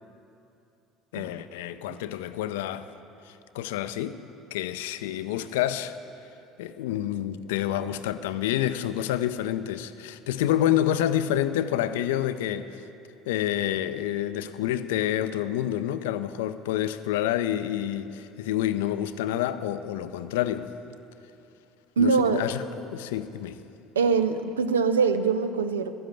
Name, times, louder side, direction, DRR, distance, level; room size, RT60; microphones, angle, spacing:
voice 1, 1.1-2.9 3.3-4.2 4.5-5.9 6.6-12.8 13.3-20.7 22.0-23.6, left 12 dB, 75° left, 0.4 m, -28 dB
voice 2, 22.0-22.4 24.0-25.9, right 5 dB, 85° right, 0.5 m, -23 dB
11.5 x 7.8 x 8.9 m
hypercardioid pair, 65°, 0 cm